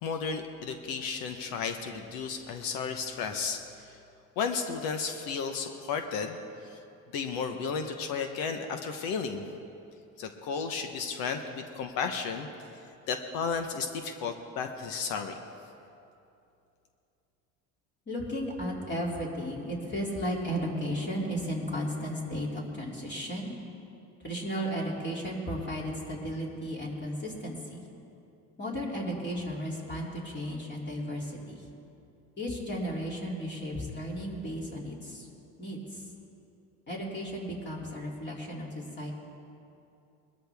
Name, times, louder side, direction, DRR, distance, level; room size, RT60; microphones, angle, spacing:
voice 1, 0.0-4.0 4.4-6.4 6.6-6.8 7.1-9.4 10.2-12.5 13.1-15.3, left 5 dB, 75° left, 6 dB, 1.0 m, -33 dB
voice 2, 18.1-23.5 24.2-27.8 28.6-31.7 32.4-35.3 35.6-36.1 36.9-39.1, equal, 30° left, -3 dB, 2.9 m, -34 dB
21.0 x 13.0 x 3.5 m, 2.7 s
supercardioid pair, 100°, 35 cm